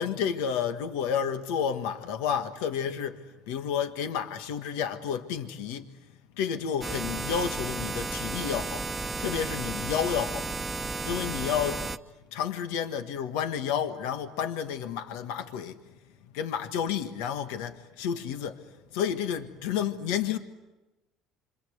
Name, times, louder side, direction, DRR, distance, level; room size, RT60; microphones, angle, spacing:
voice 1, 0.0-3.2 3.5-5.9 6.4-8.9 9.2-10.5 11.0-11.8 12.3-15.8 16.3-18.6 18.9-20.4, left 8 dB, 85° left, 1.6 m, -30 dB
sound 1, 6.8-12.0, right 3 dB, 15° right, 1.0 m, -33 dB
28.5 x 26.0 x 8.1 m
cardioid pair, 115°, 0 cm